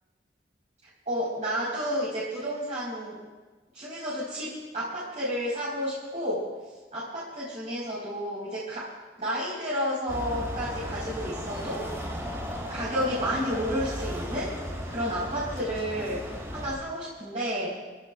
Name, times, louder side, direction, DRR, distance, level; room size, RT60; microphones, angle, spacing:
voice 1, 1.1-3.2 3.7-6.5 6.9-8.9 9.2-11.9 12.7-14.5 14.9-17.8, equal, 40° right, -9 dB, 4.7 m, -31 dB
sound 1, 10.1-16.8, equal, 15° right, 2.6 m, -35 dB
25.5 x 17.0 x 2.5 m, 1.3 s
head